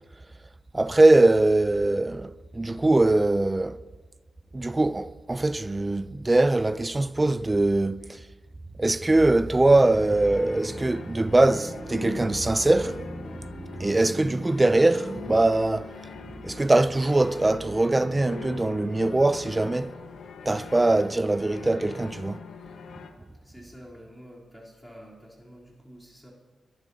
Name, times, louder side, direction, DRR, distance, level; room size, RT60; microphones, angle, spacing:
voice 1, 0.7-3.9 4.5-8.2 8.8-16.0 16.3-19.9 20.5-22.4, right 2 dB, 15° right, 0.3 m, -22 dB
sound 1, 9.7-23.1, left 6 dB, 80° left, 1.1 m, -43 dB
voice 2, 23.4-26.3, equal, 5° left, 3.2 m, -48 dB
23.5 x 11.0 x 2.7 m
wide cardioid pair, 135°, 0 cm